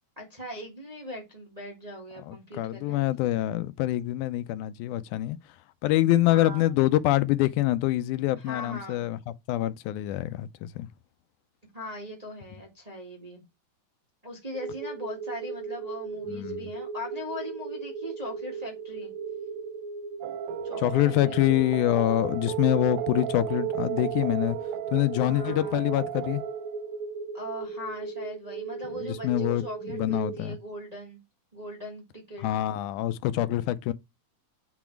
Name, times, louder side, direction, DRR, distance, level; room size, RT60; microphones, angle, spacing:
voice 1, 0.2-3.0 6.3-6.8 8.4-9.0 11.7-13.4 14.2-19.1 20.6-21.5 25.2-25.8 27.3-31.2 31.5-32.5, left 1 dB, 20° right, 1.2 m, -40 dB
voice 2, 2.3-5.4 5.8-9.2 9.5-10.9 16.3-16.7 20.8-24.6 24.9-26.4 29.0-30.6 32.4-33.9, left 15 dB, 85° left, 2.1 m, -25 dB
sound 1, 14.5-30.5, right 4 dB, 65° right, 2.6 m, -37 dB
sound 2, 20.2-26.9, right 18 dB, 85° right, 2.1 m, -35 dB
6.9 x 4.1 x 4.4 m
omnidirectional pair, 3.5 m